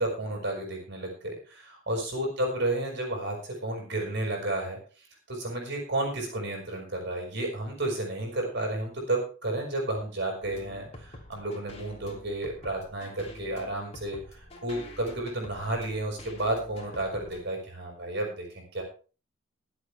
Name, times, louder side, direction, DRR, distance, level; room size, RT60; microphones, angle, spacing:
voice 1, 0.0-18.8, right 1 dB, 55° right, 1 dB, 5.6 m, -32 dB
sound 1, 10.4-17.4, left 1 dB, 30° left, 3.1 m, -47 dB
23.0 x 8.1 x 3.5 m, 0.37 s
head